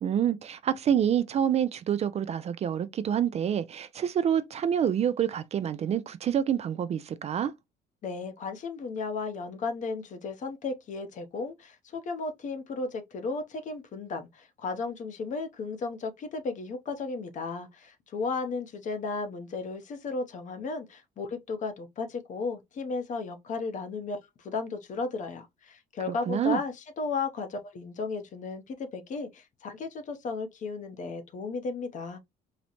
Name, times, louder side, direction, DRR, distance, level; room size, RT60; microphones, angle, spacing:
voice 1, 0.0-7.5 26.1-26.6, right 9 dB, 40° right, 0.4 m, -27 dB
voice 2, 8.0-32.2, left 4 dB, 50° left, 0.7 m, -34 dB
4.0 x 2.1 x 2.9 m
cardioid pair, 110°, 17 cm